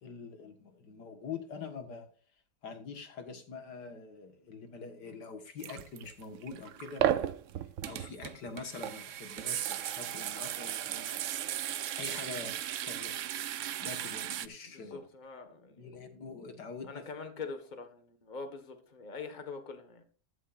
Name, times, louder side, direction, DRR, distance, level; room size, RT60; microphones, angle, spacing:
voice 1, 0.0-2.1 2.6-7.4 7.8-11.2 12.0-13.3 13.8-15.1 15.8-17.0, left 5 dB, 80° left, 2.2 m, -45 dB
sound 1, 5.6-14.5, right 11 dB, 65° right, 0.8 m, -35 dB
voice 2, 14.7-15.9 16.8-20.0, left 4 dB, 30° left, 1.6 m, -44 dB
14.5 x 12.5 x 2.5 m
omnidirectional pair, 1.8 m